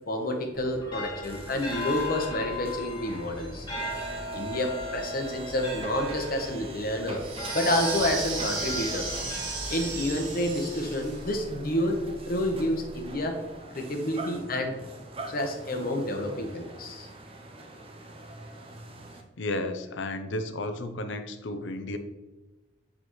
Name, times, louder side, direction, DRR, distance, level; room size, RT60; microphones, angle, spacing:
voice 1, 0.1-3.7 4.3-7.2 7.5-9.1 9.7-12.0 12.3-13.4 13.7-14.8 15.3-17.1, left 1 dB, 50° left, 4 dB, 1.0 m, -29 dB
sound 1, 0.5-10.5, left 1 dB, 25° left, 1.5 m, -38 dB
sound 2, 1.2-19.2, right 1 dB, 30° right, 0.7 m, -42 dB
sound 3, 7.2-11.2, right 3 dB, 50° right, 2.1 m, -34 dB
voice 2, 19.4-22.0, left 2 dB, 80° left, 8 dB, 0.6 m, -33 dB
7.6 x 4.9 x 3.1 m, 1.1 s
head